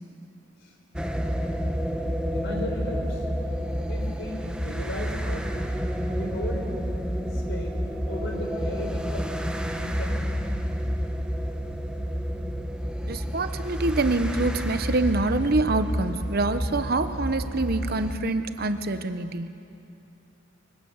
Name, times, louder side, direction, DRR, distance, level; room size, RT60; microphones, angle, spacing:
sound 1, 1.0-18.1, equal, 5° right, 1.0 m, -29 dB
voice 1, 2.3-3.2 3.9-5.8 6.2-6.7 7.3-7.7 8.1-10.2, left 1 dB, 60° left, 2 dB, 4.6 m, -36 dB
voice 2, 13.1-19.5, right 2 dB, 50° right, 10 dB, 0.9 m, -26 dB
24.5 x 24.0 x 7.2 m, 2.6 s
head